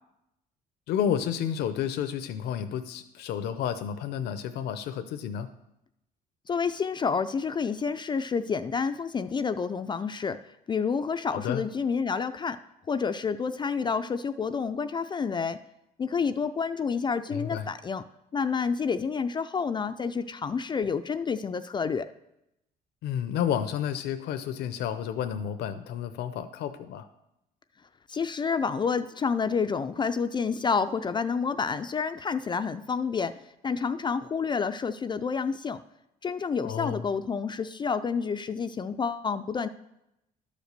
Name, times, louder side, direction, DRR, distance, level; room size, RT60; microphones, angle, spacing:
voice 1, 0.9-5.5 11.3-11.6 17.3-17.7 23.0-27.1 36.6-37.0, left 9 dB, 75° left, 9 dB, 0.6 m, -31 dB
voice 2, 6.5-10.4 10.7-12.6 12.9-15.6 16.0-18.0 18.3-22.1 28.1-33.3 33.6-35.8 36.2-39.7, left 5 dB, 25° left, 10 dB, 0.4 m, -29 dB
11.5 x 5.1 x 6.7 m, 0.87 s
cardioid pair, 110°, 17 cm